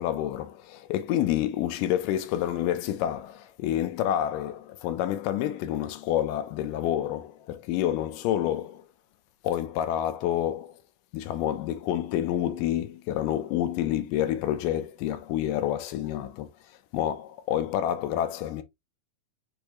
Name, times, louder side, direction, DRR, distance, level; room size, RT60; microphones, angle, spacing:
voice 1, 0.0-8.9 9.4-10.8 11.1-16.5 16.9-18.6, left 11 dB, 85° left, 2.2 m, -28 dB
6.4 x 2.7 x 2.8 m
omnidirectional pair, 3.8 m